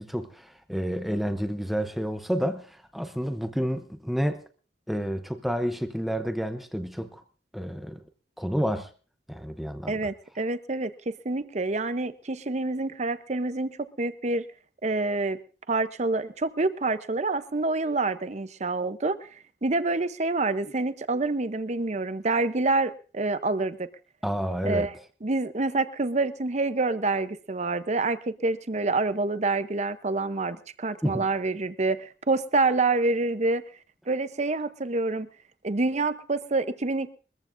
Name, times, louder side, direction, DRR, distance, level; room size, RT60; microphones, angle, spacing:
voice 1, 0.0-4.4 4.9-7.2 7.5-8.0 8.4-8.9 9.3-10.0 24.2-24.9 31.0-31.3, equal, ahead, 0.7 m, -30 dB
voice 2, 9.9-14.4 14.8-15.4 15.7-19.3 19.6-23.9 24.6-24.9 25.2-33.6 34.1-35.3 35.6-37.1, right 3 dB, 40° right, 0.8 m, -27 dB
22.5 x 14.5 x 2.6 m
head